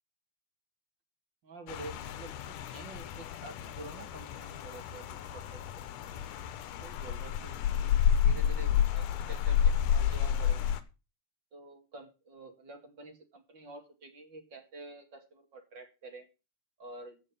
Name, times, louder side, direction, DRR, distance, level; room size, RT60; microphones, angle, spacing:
voice 1, 1.4-6.4 6.8-8.0 8.2-10.7 11.5-16.3 16.8-17.2, right 2 dB, 40° right, 5 dB, 2.3 m, -49 dB
Rain, 1.7-10.8, left 8 dB, 85° left, 2.6 m, -30 dB
15.5 x 5.4 x 7.0 m, 0.31 s
omnidirectional pair, 3.6 m